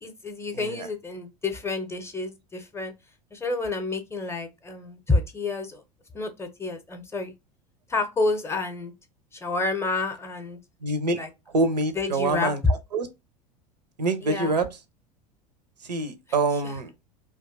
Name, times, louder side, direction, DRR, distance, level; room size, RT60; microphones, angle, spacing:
voice 1, 0.0-2.9 3.3-5.8 6.1-7.3 7.9-8.9 9.3-10.6 11.1-11.3 11.9-12.5 14.2-14.5 16.6-16.8, left 3 dB, 15° left, 0.6 m, -29 dB
voice 2, 0.5-0.9 10.8-11.2 11.5-12.6 12.9-13.1 14.0-14.7 15.8-16.9, right 3 dB, 80° right, 0.5 m, -25 dB
2.6 x 2.3 x 2.5 m
figure-of-eight pair, 75°, 21 cm